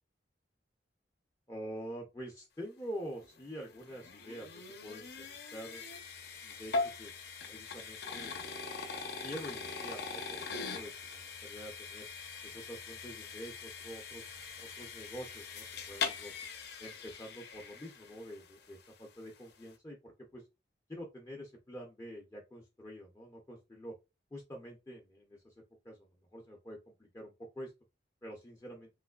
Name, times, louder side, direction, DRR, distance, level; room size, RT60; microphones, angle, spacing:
voice 1, 1.5-5.9 6.4-6.7 7.0-7.1 7.5-8.3 8.8-12.1 12.5-16.4 16.8-20.4 20.9-23.9 24.3-25.5 25.8-27.7 28.2-28.9, equal, 15° left, -1 dB, 0.5 m, -46 dB
sound 1, 3.2-18.4, left 4 dB, 60° left, 0.6 m, -41 dB
3.1 x 3.0 x 2.3 m, 0.25 s
head